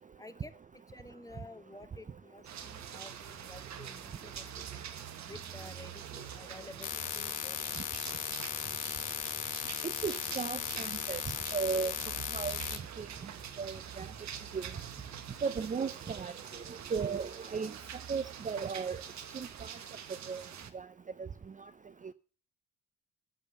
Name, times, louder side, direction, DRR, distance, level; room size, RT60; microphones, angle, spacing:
voice 1, 0.2-0.5 0.9-4.9 5.3-7.6, left 2 dB, 10° left, 1.3 m, -51 dB
sound 1, 2.4-20.7, right 8 dB, 65° right, 1.6 m, -45 dB
sound 2, 6.8-12.8, left 14 dB, 85° left, 1.1 m, -37 dB
voice 2, 9.8-11.9 12.3-12.6 13.0-13.1 13.6-14.1 14.5-14.7 15.4-17.7 18.1-19.0 19.3-19.7 20.3-20.4 20.7-20.9 21.2-21.3, right 5 dB, 25° right, 0.6 m, -35 dB
13.0 x 8.6 x 6.8 m
cardioid pair, 90°, 30 cm